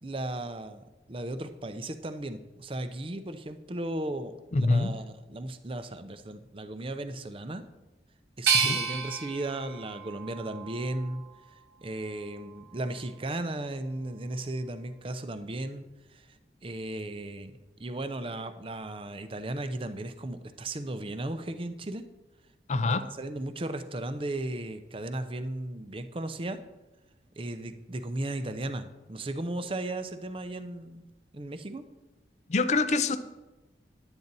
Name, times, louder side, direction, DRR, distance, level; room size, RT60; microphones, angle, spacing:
voice 1, 0.0-7.6 8.4-11.2 11.8-16.3 16.6-17.5 17.8-22.1 23.2-26.6 27.4-31.1 31.3-31.8, right 1 dB, 30° right, 10 dB, 0.6 m, -36 dB
voice 2, 4.5-5.0 8.5-8.8 22.7-23.1 32.5-33.2, left 3 dB, 40° left, 12 dB, 0.5 m, -25 dB
sound 1, 8.5-11.4 11.9-12.8, right 5 dB, 70° right, 1.3 m, -31 dB
11.0 x 8.7 x 4.0 m, 1.1 s
head